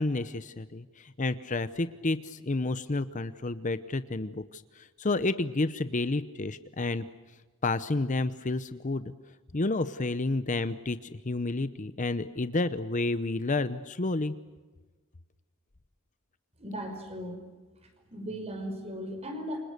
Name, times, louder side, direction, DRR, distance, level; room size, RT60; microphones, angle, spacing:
voice 1, 0.0-7.0 7.6-9.1 9.5-11.0 11.2-14.3, left 2 dB, 35° left, 13 dB, 0.8 m, -30 dB
voice 2, 16.6-17.4 17.8-19.6, equal, 30° right, 5 dB, 5.4 m, -37 dB
29.0 x 26.0 x 6.7 m, 1.3 s
head